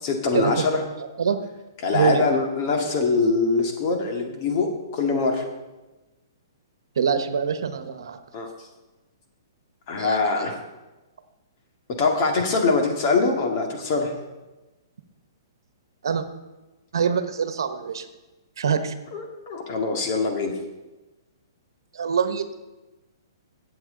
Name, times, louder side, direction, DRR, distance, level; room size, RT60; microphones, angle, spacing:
voice 1, 0.0-0.8 1.8-4.7 4.9-5.4 8.3-8.5 9.9-10.6 12.0-14.1 19.1-20.5, left 4 dB, 40° left, 2 dB, 2.1 m, -23 dB
voice 2, 1.9-2.3 7.0-8.2 10.0-10.5 16.0-16.2 16.9-18.1 18.6-18.9 21.9-22.5, right 6 dB, 80° right, 10 dB, 1.1 m, -24 dB
15.5 x 7.9 x 3.9 m, 1.1 s
hypercardioid pair, 155°, 2 cm